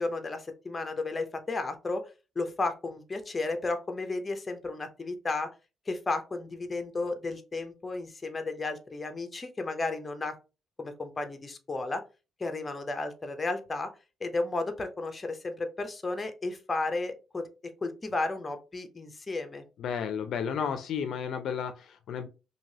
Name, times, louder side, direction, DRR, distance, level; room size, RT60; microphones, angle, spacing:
voice 1, 0.0-2.1 2.4-5.5 5.9-10.4 10.8-12.0 12.4-13.9 14.2-19.6, left 3 dB, 25° left, 0.6 m, -33 dB
voice 2, 19.8-22.3, left 7 dB, 70° left, 0.4 m, -32 dB
2.9 x 2.7 x 2.7 m
cardioid pair, 90°, 0 cm